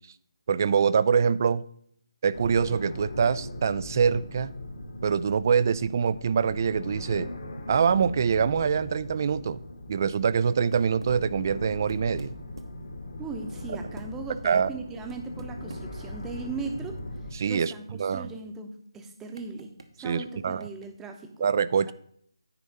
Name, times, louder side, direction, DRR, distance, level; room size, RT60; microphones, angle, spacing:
voice 1, 0.5-1.6 2.2-4.5 5.0-7.3 7.7-9.6 9.9-12.3 14.4-14.7 17.4-17.7 18.0-18.3 20.0-20.7 21.4-21.9, right 6 dB, 40° right, 18 dB, 0.4 m, -24 dB
sound 1, 2.3-17.3, left 1 dB, 65° left, 2.2 m, -39 dB
sound 2, 10.7-11.3 11.8-12.8 13.9-14.1 15.1-15.8 16.2-16.3 16.7-17.4 17.7-17.8 18.0-18.2 19.4-19.9 20.6-20.9, right 2 dB, 75° right, 1.2 m, -46 dB
voice 2, 13.2-17.0 17.5-19.7 20.0-21.5 21.9-22.0, right 4 dB, 10° right, 4 dB, 0.8 m, -38 dB
9.7 x 4.2 x 6.6 m, 0.65 s
figure-of-eight pair, 155°, 3 cm